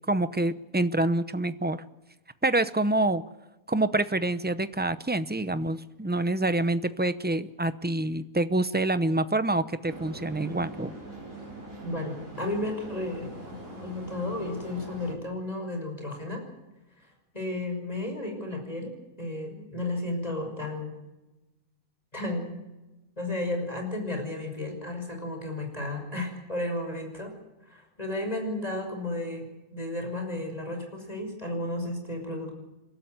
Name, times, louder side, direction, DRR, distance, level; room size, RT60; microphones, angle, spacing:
voice 1, 0.1-1.8 2.4-3.2 3.7-11.0, right 2 dB, 15° right, 12 dB, 0.4 m, -26 dB
sound 1, 9.9-15.1, right 2 dB, 60° right, 5.9 m, -42 dB
voice 2, 11.8-16.5 17.0-17.1 17.3-18.9 19.2-20.9 22.1-22.6 23.2-27.4 27.7-32.5, left 2 dB, 25° left, 3 dB, 6.0 m, -33 dB
29.5 x 12.5 x 9.6 m, 1.1 s
omnidirectional pair, 1.5 m